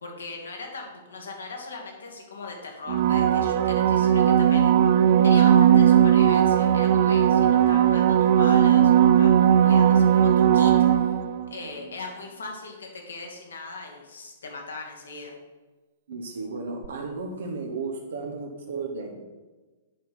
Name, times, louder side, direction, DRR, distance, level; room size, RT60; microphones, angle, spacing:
voice 1, 0.0-4.7 5.2-9.3 9.6-11.2 11.5-15.3, left 3 dB, 70° left, 1 dB, 1.6 m, -39 dB
sound 1, 2.9-11.5 16.8-16.9, right 9 dB, 50° right, 0.4 m, -18 dB
voice 2, 16.1-19.2, right 3 dB, 65° right, 2 dB, 0.9 m, -34 dB
7.6 x 5.3 x 4.2 m, 1.2 s
figure-of-eight pair, 105°, 0 cm